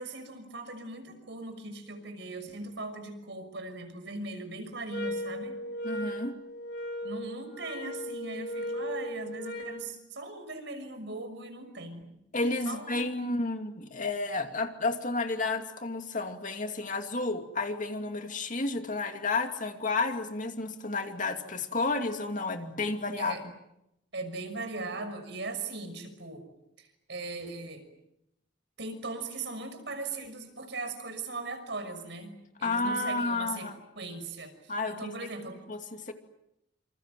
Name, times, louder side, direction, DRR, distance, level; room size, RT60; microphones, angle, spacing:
voice 1, 0.0-5.6 7.0-12.0 12.6-13.1 23.2-23.4 24.1-26.5 26.8-27.8 28.8-32.3 32.6-33.7 34.0-35.6, right 3 dB, 65° right, 7 dB, 6.0 m, -39 dB
sound 1, 4.9-9.8, equal, 60° left, 6.6 m, -37 dB
voice 2, 5.8-6.3 12.3-23.4 32.6-33.8 34.7-35.1 35.7-36.1, left 3 dB, 45° left, 6 dB, 2.6 m, -31 dB
28.0 x 27.5 x 7.7 m, 0.83 s
head